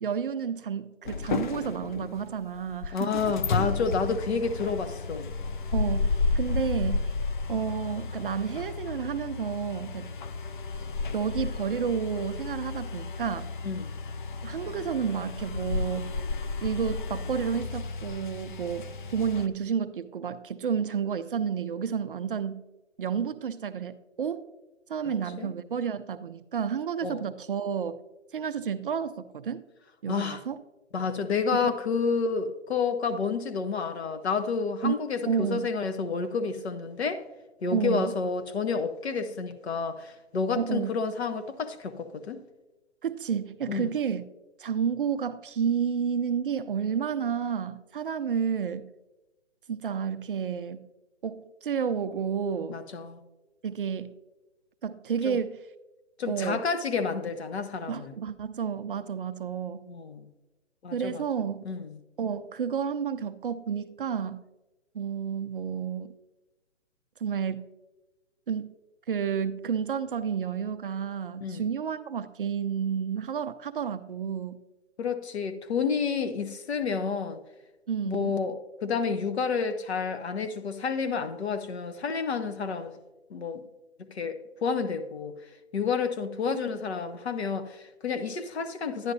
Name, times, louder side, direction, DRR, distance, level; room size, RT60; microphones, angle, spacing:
voice 1, 0.0-3.4 5.7-7.1 7.5-10.1 11.1-13.5 14.4-16.2 16.6-22.6 23.0-24.5 24.9-28.0 28.3-29.6 30.0-30.6 31.6-31.7 34.8-34.9 35.3-35.7 37.7-38.1 40.5-40.9 43.0-44.2 44.6-48.9 49.7-50.8 51.2-52.8 53.6-54.2 54.8-55.6 56.3-56.7 57.9-59.9 60.9-61.6 62.2-64.5 64.9-66.1 67.2-67.6 68.5-68.7 69.1-74.6 77.9-78.3, right 7 dB, 50° right, 0.4 m, -31 dB
sound 1, 1.1-19.5, left 4 dB, 45° left, 0.5 m, -32 dB
voice 2, 2.9-5.3 13.6-13.9 25.0-25.5 27.0-27.2 30.1-30.4 30.9-37.2 37.6-42.4 43.7-43.9 52.7-53.2 55.2-55.4 56.2-58.1 59.9-60.3 60.8-61.2 61.6-62.0 71.4-71.7 75.0-77.4 78.0-78.6 78.8-83.0 83.3-83.6 84.1-85.3 85.7-89.1, left 5 dB, 60° left, 0.9 m, -30 dB
10.5 x 10.5 x 2.7 m
hypercardioid pair, 145°, 36 cm